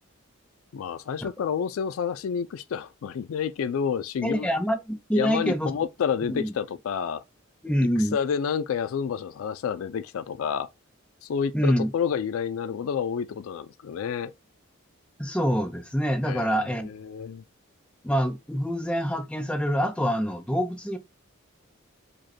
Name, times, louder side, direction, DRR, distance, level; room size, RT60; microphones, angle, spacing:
voice 1, 0.7-4.5 5.1-7.2 8.0-10.7 11.2-14.3 16.3-17.4, left 7 dB, 75° left, 0.4 m, -29 dB
voice 2, 4.2-5.8 6.3-6.5 7.6-8.2 11.5-11.9 15.2-16.9 18.0-21.0, equal, 5° left, 0.5 m, -26 dB
5.0 x 2.2 x 4.2 m
head